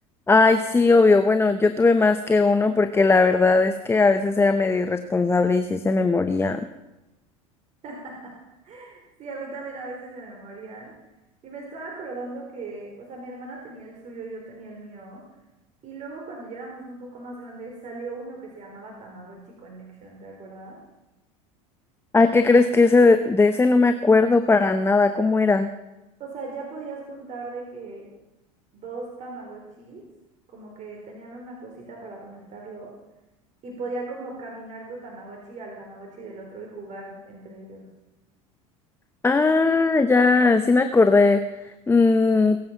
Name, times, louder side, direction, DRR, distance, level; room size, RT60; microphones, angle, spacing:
voice 1, 0.3-6.7 22.1-25.7 39.2-41.5 41.9-42.6, left 3 dB, 15° left, 9 dB, 0.9 m, -18 dB
voice 2, 7.8-8.3 8.6-10.9 11.4-15.2 15.8-20.8 26.2-28.1 28.7-30.0 30.5-32.9 33.6-37.9, right 3 dB, 45° right, -1 dB, 4.1 m, -38 dB
22.0 x 9.0 x 5.7 m, 1.0 s
hypercardioid pair, 85°, 18 cm